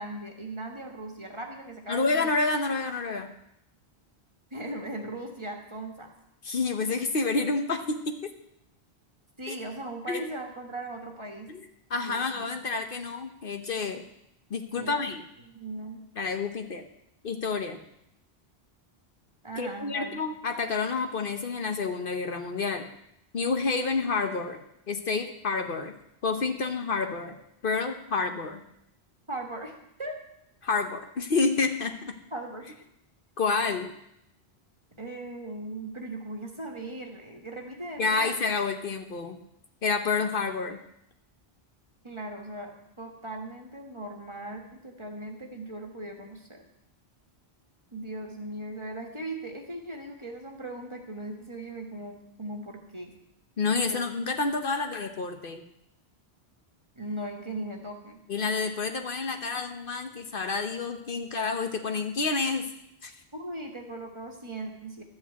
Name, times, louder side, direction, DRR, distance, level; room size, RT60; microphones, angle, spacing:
voice 1, 0.0-2.3 4.5-6.1 9.4-11.5 12.0-12.5 14.7-15.1 15.4-16.0 19.4-20.2 29.3-30.2 32.3-32.6 35.0-38.3 42.0-46.6 47.9-53.1 53.7-54.0 57.0-58.2 63.3-65.0, right 1 dB, 30° right, 2 dB, 1.5 m, -38 dB
voice 2, 1.9-3.3 6.4-8.3 9.5-9.6 10.1-10.2 11.5-11.6 11.9-14.0 14.5-15.2 16.2-16.8 17.2-17.8 19.6-22.8 23.3-24.6 24.9-25.9 26.2-27.4 27.6-28.6 30.6-32.1 33.4-33.9 38.0-39.4 39.8-40.8 53.6-55.6 58.3-62.7 63.0-63.1, left 4 dB, 60° left, 6 dB, 1.0 m, -29 dB
12.5 x 5.6 x 8.1 m, 0.79 s
omnidirectional pair, 1.1 m